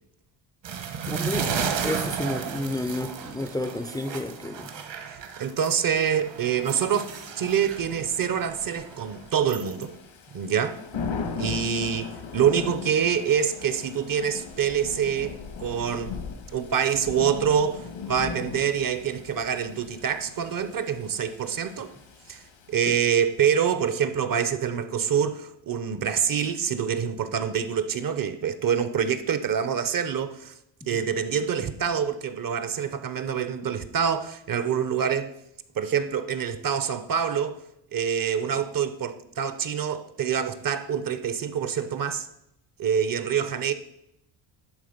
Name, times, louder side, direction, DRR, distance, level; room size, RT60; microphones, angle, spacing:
sound 1, 0.6-5.8 6.2-9.8, right 6 dB, 60° right, 1.2 m, -34 dB
voice 1, 1.1-4.7 22.9-23.0 30.9-31.1, left 1 dB, 10° left, 0.4 m, -31 dB
voice 2, 5.4-9.9 10.3-10.8 11.4-16.1 16.5-21.9 22.3-22.4 22.7-30.5 30.9-35.3 35.8-37.6 37.9-42.3 42.8-43.7, right 8 dB, 45° right, 0.7 m, -26 dB
Thunder / Rain, 6.6-23.2, left 5 dB, 80° left, 1.6 m, -39 dB
11.0 x 3.8 x 5.1 m
cardioid pair, 95°, 48 cm